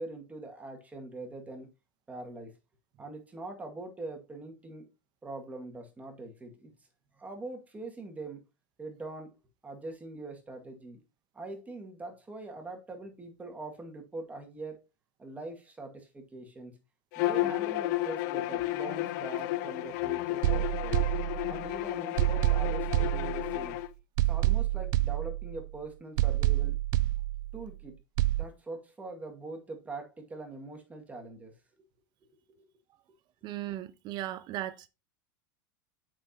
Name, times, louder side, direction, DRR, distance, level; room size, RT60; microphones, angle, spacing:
voice 1, 0.0-1.7 2.1-2.5 3.0-4.9 5.2-6.7 7.1-8.4 8.8-9.4 9.6-11.0 11.3-14.8 15.2-16.8 17.2-21.0 21.5-23.8 24.3-26.8 27.5-28.0 28.4-31.6 32.5-32.7, right 2 dB, 15° right, 2.0 m, -43 dB
Bowed string instrument, 17.1-23.9, left 16 dB, 65° left, 0.6 m, -32 dB
sound 1, 20.4-21.7 22.2-23.7 24.2-25.7 26.2-27.7 28.2-28.4, right 16 dB, 70° right, 0.4 m, -28 dB
voice 2, 33.4-34.8, right 14 dB, 45° right, 0.9 m, -37 dB
7.9 x 6.0 x 2.8 m
supercardioid pair, 120°, 10 cm